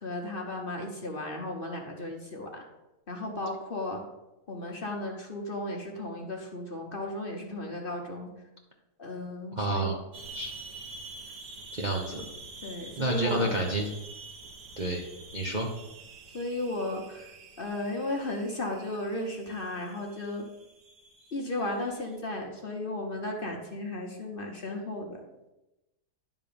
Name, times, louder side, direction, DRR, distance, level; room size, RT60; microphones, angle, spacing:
voice 1, 0.0-2.6 3.1-4.0 4.5-8.3 9.0-9.9 12.6-13.5 16.3-17.3 17.6-20.5 21.3-25.3, left 1 dB, 35° left, 1 dB, 1.1 m, -35 dB
voice 2, 9.5-10.0 10.3-10.5 11.7-12.2 13.0-13.9 14.8-15.0 15.3-15.7, right 1 dB, 35° right, -1 dB, 0.8 m, -29 dB
sound 1, 10.1-22.2, right 3 dB, 85° right, 1.7 m, -47 dB
11.0 x 3.7 x 6.8 m, 0.98 s
omnidirectional pair, 1.8 m